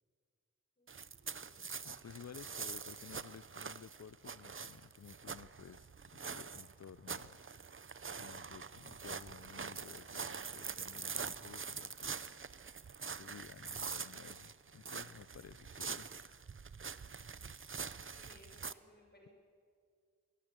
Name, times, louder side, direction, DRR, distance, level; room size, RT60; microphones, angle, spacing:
voice 1, 0.8-1.9 17.9-19.3, left 1 dB, 30° left, 1 dB, 5.8 m, -64 dB
sound 1, 0.9-18.7, right 5 dB, 40° right, 0.6 m, -45 dB
voice 2, 1.8-7.4 8.2-12.2 13.2-16.1, left 7 dB, 55° left, 20 dB, 0.5 m, -54 dB
21.5 x 21.0 x 8.0 m, 2.2 s
wide cardioid pair, 75°, 31 cm